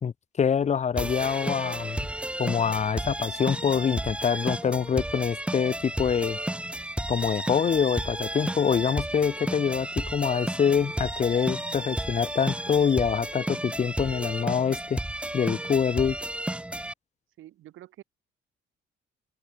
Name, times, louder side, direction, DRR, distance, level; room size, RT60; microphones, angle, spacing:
voice 1, 0.0-2.1 2.4-6.4 7.1-15.0 15.3-16.2, left 7 dB, 35° left, 0.6 m, -25 dB
sound 1, 1.0-16.9, right 1 dB, 5° right, 0.9 m, -32 dB
Organ, 1.6-12.3, left 14 dB, 85° left, 5.2 m, -63 dB
voice 2, 17.4-18.0, right 14 dB, 80° right, 2.1 m, -47 dB
open air
cardioid pair, 90°, 20 cm